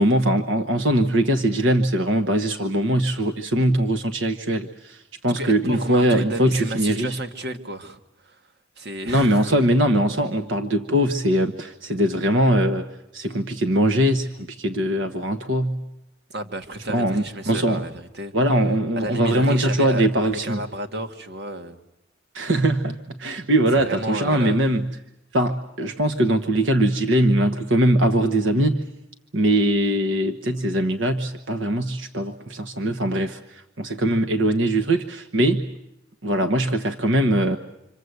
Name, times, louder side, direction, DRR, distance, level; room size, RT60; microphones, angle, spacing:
voice 1, 0.0-7.2 9.0-12.9 13.1-15.8 16.9-17.8 18.3-20.6 22.3-24.9 25.3-28.8 29.3-35.7 36.2-37.6, right 1 dB, 80° right, 7 dB, 1.2 m, -21 dB
voice 2, 5.3-8.4 8.8-9.6 16.3-18.3 19.0-21.8 23.7-24.6, right 1 dB, 60° right, 8 dB, 1.7 m, -32 dB
27.0 x 25.5 x 8.1 m, 0.89 s
head